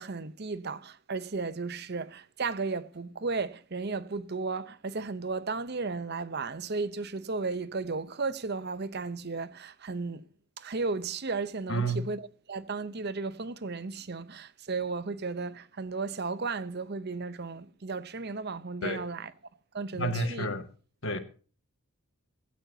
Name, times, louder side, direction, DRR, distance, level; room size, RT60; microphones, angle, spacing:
voice 1, 0.0-10.3 10.6-19.3 19.7-20.5, right 4 dB, 45° right, 0.7 m, -34 dB
voice 2, 11.7-12.0 18.8-19.0 20.0-20.7 21.0-21.2, right 1 dB, 55° left, 1.9 m, -30 dB
16.5 x 16.5 x 2.8 m
head